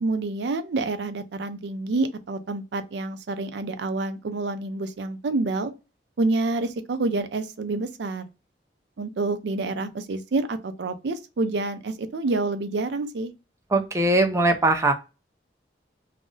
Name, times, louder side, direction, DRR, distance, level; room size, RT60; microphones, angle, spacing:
voice 1, 0.0-5.7 6.2-8.3 9.0-13.3, right 3 dB, 70° right, 0.4 m, -28 dB
voice 2, 13.7-14.9, right 2 dB, 15° right, 0.5 m, -20 dB
2.5 x 2.0 x 3.7 m
head